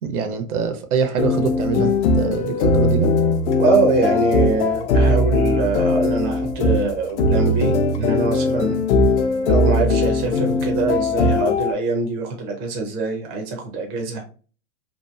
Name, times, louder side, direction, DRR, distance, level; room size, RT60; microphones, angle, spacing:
voice 1, 0.0-3.1, right 6 dB, 85° right, 0.8 m, -24 dB
sound 1, 1.2-11.7, left 2 dB, 50° left, 0.5 m, -19 dB
voice 2, 3.6-8.8 9.5-14.2, right 3 dB, 20° right, 0.4 m, -23 dB
2.9 x 2.3 x 2.2 m
hypercardioid pair, 135°, 44 cm